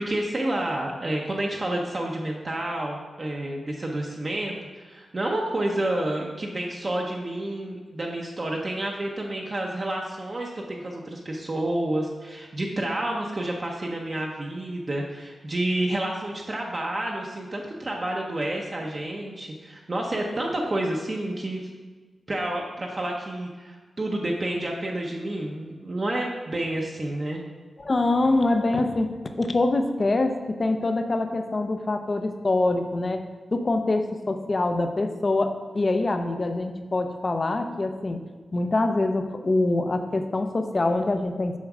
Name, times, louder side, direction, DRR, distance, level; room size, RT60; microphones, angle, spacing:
voice 1, 0.0-21.7 22.3-27.4, right 1 dB, 30° right, -1 dB, 0.7 m, -29 dB
voice 2, 27.8-33.2 33.5-38.2 38.5-41.6, left 2 dB, 30° left, 7 dB, 0.5 m, -24 dB
7.3 x 4.4 x 6.0 m, 1.3 s
wide cardioid pair, 165°, 0 cm